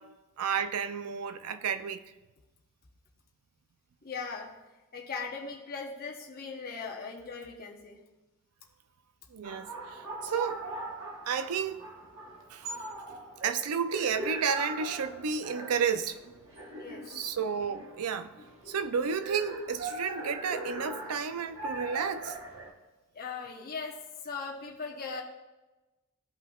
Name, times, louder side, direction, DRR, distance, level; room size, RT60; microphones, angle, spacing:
voice 1, 0.0-2.0 9.3-10.6 11.3-11.8 12.5-12.9 13.4-16.2 17.1-18.3 18.7-22.4, right 6 dB, 85° right, 0.5 m, -32 dB
voice 2, 4.0-4.5 4.9-8.0 16.8-17.0 23.1-24.0 24.2-25.2, left 5 dB, 45° left, 0.9 m, -39 dB
sound 1, 9.4-22.7, right 2 dB, 60° right, 1.2 m, -41 dB
14.0 x 5.5 x 2.4 m
head